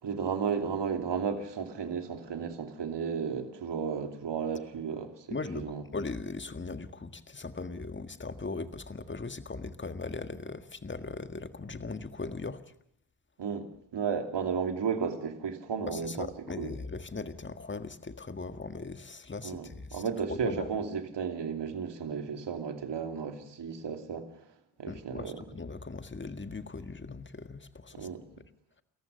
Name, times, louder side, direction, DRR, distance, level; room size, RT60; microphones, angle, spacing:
voice 1, 0.0-5.8 13.4-16.3 16.6-16.7 19.4-24.4 24.8-25.4 27.9-28.2, right 6 dB, 55° right, 2.9 m, -34 dB
voice 2, 5.3-12.6 15.9-20.0 20.3-20.6 24.8-28.1, left 3 dB, 25° left, 1.7 m, -39 dB
29.5 x 14.5 x 6.7 m
hypercardioid pair, 45°, 49 cm